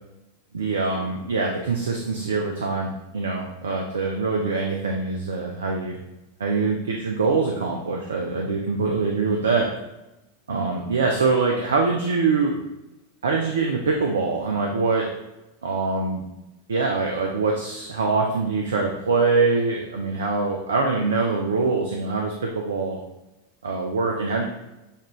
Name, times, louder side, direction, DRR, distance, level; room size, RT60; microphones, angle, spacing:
voice 1, 0.5-6.0 6.4-9.7 10.5-12.6 13.2-15.1 15.6-16.2 16.7-23.0 23.6-24.4, right 4 dB, 65° right, 1 dB, 0.5 m, -24 dB
6.3 x 2.5 x 3.1 m, 0.95 s
figure-of-eight pair, 90°, 0 cm